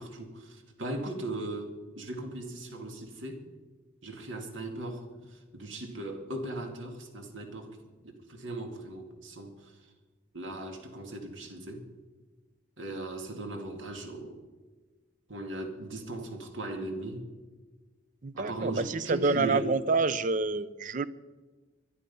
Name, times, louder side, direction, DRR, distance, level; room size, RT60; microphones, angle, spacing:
voice 1, 0.0-3.4 4.0-9.5 10.3-11.9 12.8-14.4 15.3-17.2 18.3-19.7, right 2 dB, 75° right, 2.2 m, -38 dB
voice 2, 18.2-21.1, right 3 dB, 40° right, 0.5 m, -28 dB
23.0 x 11.5 x 5.5 m
head